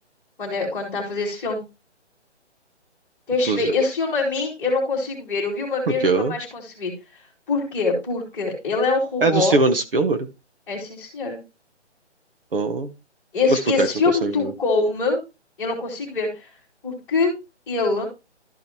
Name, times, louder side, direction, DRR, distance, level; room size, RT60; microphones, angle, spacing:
voice 1, 0.4-1.6 3.3-6.9 7.5-9.6 10.7-11.4 13.3-15.2 15.6-16.5 16.8-17.3 17.7-18.1, left 3 dB, 5° left, -6 dB, 2.3 m, -24 dB
voice 2, 6.0-6.3 9.2-10.3 12.5-12.9 13.5-14.5, right 3 dB, 50° right, 8 dB, 1.3 m, -21 dB
13.0 x 5.1 x 2.9 m, 0.26 s
hypercardioid pair, 170°, 35 cm